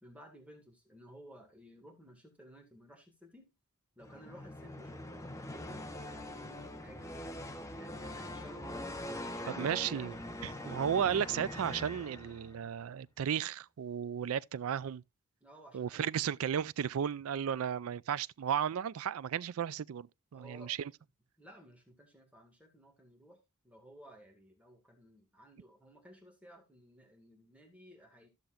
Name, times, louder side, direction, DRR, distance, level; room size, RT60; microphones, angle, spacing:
voice 1, 0.0-3.5 4.0-7.2 7.7-10.7 15.4-16.4 20.3-20.8 21.4-23.4 23.6-28.3, equal, 5° right, 1.8 m, -56 dB
sound 1, 4.0-12.7, left 1 dB, 15° left, 0.8 m, -43 dB
voice 2, 9.6-10.1 10.6-15.0 15.7-20.1 20.3-20.8, right 8 dB, 75° right, 0.4 m, -34 dB
13.5 x 6.8 x 2.4 m
head